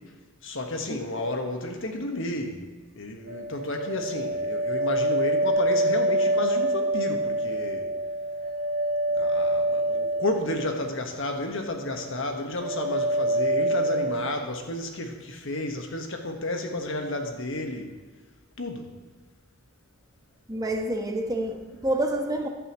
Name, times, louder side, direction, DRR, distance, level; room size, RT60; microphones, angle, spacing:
voice 1, 0.4-2.6 2.9-7.9 9.1-17.9 18.6-18.9, left 2 dB, 65° left, 4 dB, 1.4 m, -32 dB
sound 1, 3.3-11.4 11.7-12.3 12.6-14.3, right 1 dB, 45° right, 2.8 m, -26 dB
voice 2, 20.5-22.5, right 1 dB, 15° right, 3 dB, 1.1 m, -28 dB
15.0 x 11.0 x 3.1 m, 1.4 s
head